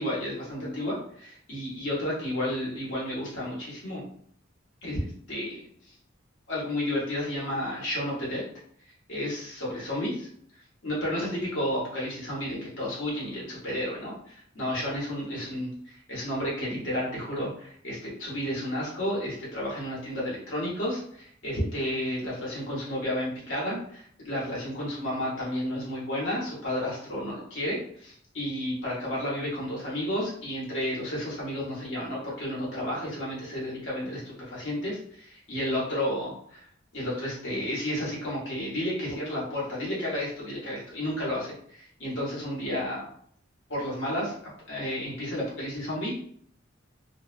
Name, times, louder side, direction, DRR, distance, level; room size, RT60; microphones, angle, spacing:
voice 1, 0.0-4.0 4.8-5.6 6.5-8.4 9.1-10.3 10.8-14.1 14.5-36.6 36.9-43.1 43.7-44.3 44.7-46.1, left 1 dB, 75° left, -5 dB, 1.1 m, -32 dB
2.5 x 2.0 x 2.4 m, 0.62 s
head